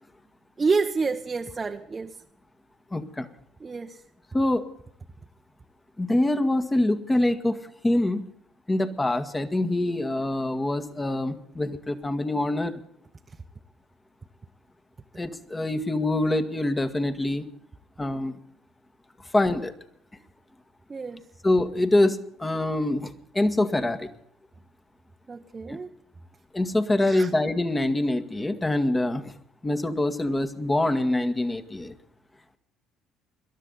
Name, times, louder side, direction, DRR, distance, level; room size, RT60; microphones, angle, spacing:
voice 1, 0.6-2.2 3.6-4.0 20.9-21.2 25.3-25.9 27.0-27.3, right 4 dB, 30° right, 3 dB, 1.0 m, -28 dB
voice 2, 2.9-3.3 4.3-4.6 6.0-7.6 7.8-8.2 8.7-12.8 15.2-17.5 18.0-18.4 19.3-19.7 21.4-24.1 25.7-25.8 26.5-29.3 29.6-31.9, left 1 dB, 20° left, 8 dB, 1.8 m, -25 dB
21.5 x 12.5 x 4.1 m, 0.67 s
hypercardioid pair, 55°, 0 cm